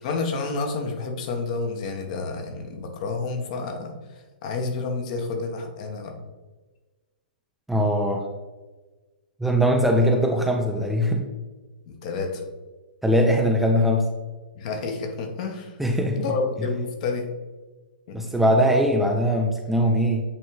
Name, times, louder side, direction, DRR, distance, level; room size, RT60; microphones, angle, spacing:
voice 1, 0.0-4.0 4.4-6.1 11.9-12.4 14.5-15.8 16.1-17.3 18.1-18.3, left 4 dB, 45° left, 3 dB, 1.0 m, -29 dB
voice 2, 7.7-8.2 9.4-11.3 13.0-14.1 15.8-16.2 18.1-20.2, equal, 5° right, 1 dB, 0.4 m, -21 dB
8.6 x 3.3 x 3.3 m, 1.3 s
figure-of-eight pair, 115°, 5 cm